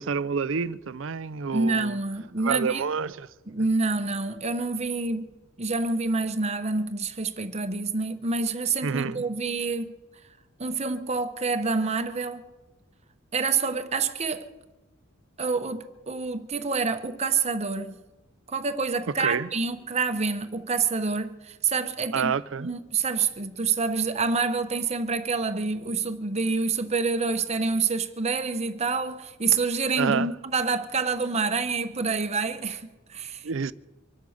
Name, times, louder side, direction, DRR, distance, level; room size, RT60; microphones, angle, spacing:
voice 1, 0.0-2.0 2.4-3.3 8.8-9.2 19.2-19.5 22.1-22.7 30.0-30.3 33.4-33.7, right 6 dB, 65° right, 0.5 m, -28 dB
voice 2, 1.5-2.8 3.5-5.3 5.6-10.0 10.6-12.5 13.3-14.5 15.4-18.0 18.5-33.7, right 4 dB, 30° right, 1.0 m, -27 dB
25.0 x 8.4 x 6.5 m
head